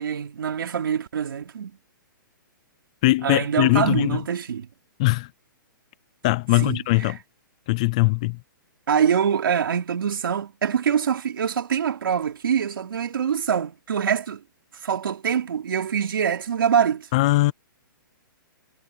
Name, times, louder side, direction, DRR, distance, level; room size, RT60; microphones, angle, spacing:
voice 1, 0.0-1.7 3.2-4.7 6.5-7.1 8.9-14.4 14.8-17.1, right 8 dB, 80° right, 3.3 m, -24 dB
voice 2, 3.0-4.2 5.0-5.3 6.2-7.2 7.7-8.4 17.1-17.5, left 20 dB, 20° left, 0.4 m, -20 dB
hypercardioid pair, 180°, 11 cm